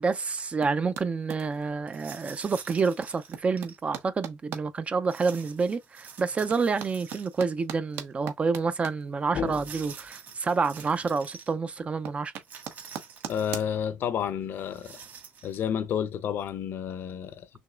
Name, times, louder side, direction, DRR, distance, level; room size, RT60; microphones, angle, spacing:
voice 1, 0.0-12.3, right 4 dB, 30° right, 0.4 m, -28 dB
sound 1, 0.6-1.8 2.6-4.6 5.2-5.3 5.9-10.5 10.8-11.4 11.6-13.7, right 8 dB, 70° right, 1.0 m, -40 dB
sound 2, 1.9-3.8 5.1-7.6 7.9-8.0 9.5-11.5 12.4-13.6 14.6-15.6, right 6 dB, 45° right, 1.9 m, -47 dB
voice 2, 13.3-15.0 15.4-17.5, left 8 dB, 55° left, 0.6 m, -30 dB
6.1 x 2.9 x 2.3 m
cardioid pair, 110°, 4 cm